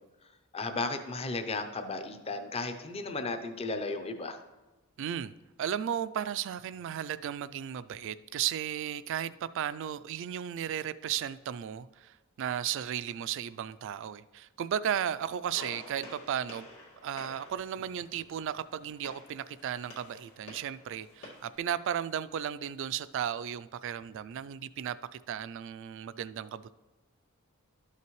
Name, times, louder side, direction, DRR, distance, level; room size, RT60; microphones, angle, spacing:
voice 1, 0.5-4.4, left 3 dB, 30° left, 0.5 m, -34 dB
voice 2, 5.0-16.7 17.0-26.7, right 9 dB, 60° right, 0.3 m, -35 dB
Gunshot gunfire, 15.5-21.6, left 2 dB, 90° left, 1.9 m, -50 dB
12.5 x 5.7 x 3.1 m
head